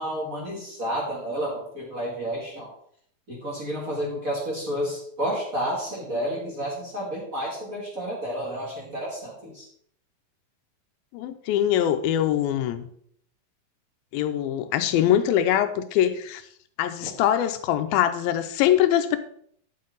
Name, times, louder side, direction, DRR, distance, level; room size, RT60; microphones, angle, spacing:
voice 1, 0.0-2.7 3.3-9.7, equal, 25° right, -4 dB, 2.2 m, -30 dB
voice 2, 11.1-12.9 14.1-16.4 16.8-19.2, left 11 dB, 85° left, 9 dB, 2.5 m, -23 dB
9.3 x 7.6 x 3.9 m, 0.64 s
omnidirectional pair, 4.2 m